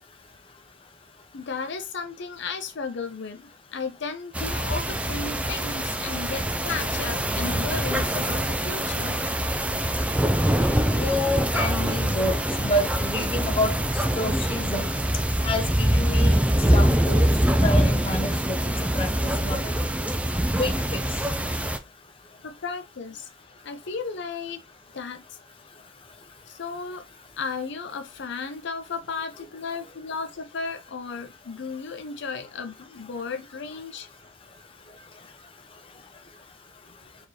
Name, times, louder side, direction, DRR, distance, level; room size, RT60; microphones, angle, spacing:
voice 1, 1.3-9.2 22.4-23.3 23.6-24.6 24.9-25.4 26.5-27.0 27.4-34.1, left 5 dB, 65° left, 0.6 m, -34 dB
sound 1, 4.3-21.8, right 1 dB, 5° right, 0.4 m, -24 dB
voice 2, 10.9-13.7 14.2-14.9 15.4-16.4 16.7-17.3 17.6-18.6 18.9-19.7 20.6-21.0, left 1 dB, 30° left, 0.7 m, -28 dB
4.4 x 3.0 x 3.2 m
head